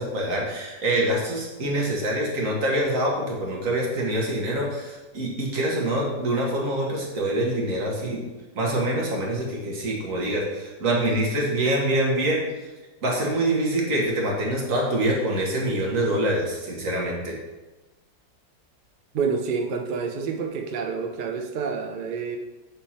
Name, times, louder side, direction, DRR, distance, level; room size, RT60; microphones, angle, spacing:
voice 1, 0.0-8.2 8.5-12.4 13.0-17.3, right 1 dB, 55° right, -2 dB, 1.6 m, -25 dB
voice 2, 19.1-22.4, right 5 dB, 70° right, 2 dB, 0.4 m, -28 dB
7.2 x 3.6 x 4.2 m, 1.1 s
omnidirectional pair, 1.8 m